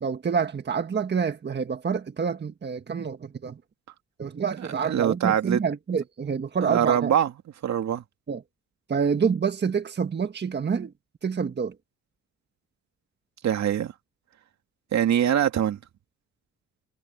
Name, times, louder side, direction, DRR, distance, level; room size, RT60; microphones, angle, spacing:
voice 1, 0.0-3.6 4.2-7.1 8.3-8.4 8.9-10.9 11.2-11.7, right 6 dB, 35° right, 1.6 m, -27 dB
voice 2, 4.9-5.6 6.6-7.3 7.6-8.0 13.4-13.9 14.9-15.8, right 10 dB, 65° right, 2.4 m, -23 dB
cardioid pair, 90°, 30 cm